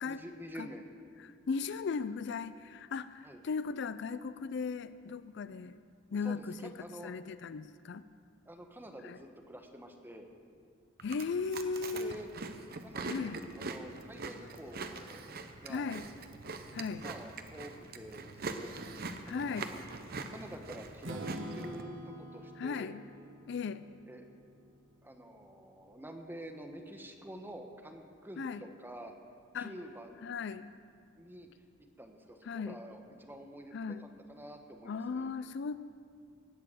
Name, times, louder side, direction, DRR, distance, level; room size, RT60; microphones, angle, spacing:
voice 1, 0.0-0.9 3.2-3.4 6.2-7.1 8.5-10.3 11.9-12.3 12.8-15.9 17.0-18.8 19.2-19.8 20.3-22.9 24.1-24.2 25.0-29.1 29.5-30.2 31.1-31.5 32.0-35.3, right 1 dB, 10° right, 4 dB, 1.2 m, -48 dB
voice 2, 1.2-5.8 6.1-6.7 7.0-8.1 9.0-9.2 11.0-12.2 13.0-13.4 15.7-16.1 16.7-17.0 19.3-19.7 22.6-23.0 23.5-23.9 28.4-28.6 29.5-29.7 30.2-30.7 32.4-32.8 33.7-34.1 34.9-35.8, left 5 dB, 60° left, 14 dB, 0.4 m, -37 dB
Chewing mastication, 11.0-21.8, right 3 dB, 50° right, 0.8 m, -43 dB
Strum, 21.0-25.0, right 1 dB, 80° right, 1.4 m, -46 dB
19.0 x 6.8 x 7.8 m, 2.2 s
head